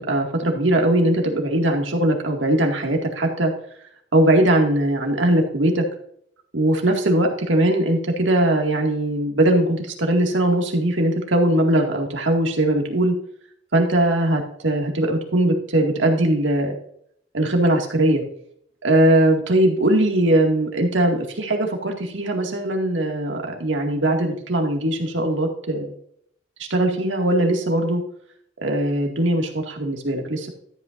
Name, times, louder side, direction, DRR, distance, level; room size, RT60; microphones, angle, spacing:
voice 1, 0.1-3.5 4.1-5.9 6.5-13.1 13.7-16.8 17.3-18.2 18.8-25.9 26.7-28.0 28.6-30.5, right 1 dB, 85° right, 2 dB, 2.1 m, -20 dB
13.5 x 8.5 x 2.6 m, 0.66 s
head